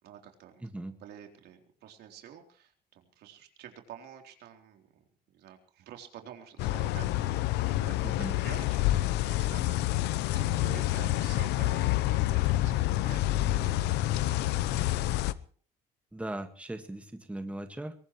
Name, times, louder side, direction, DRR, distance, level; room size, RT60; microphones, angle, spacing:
voice 1, 0.0-0.6 1.0-5.0 5.3-9.8 10.3-15.1, right 9 dB, 75° right, 4 dB, 3.8 m, -49 dB
voice 2, 0.6-1.0 8.0-8.4 16.1-18.0, right 1 dB, 5° right, 7 dB, 1.8 m, -38 dB
sound 1, 6.6-15.3, left 15 dB, 90° left, 0.8 m, -28 dB
23.0 x 19.0 x 3.2 m, 0.42 s
cardioid pair, 110°, 17 cm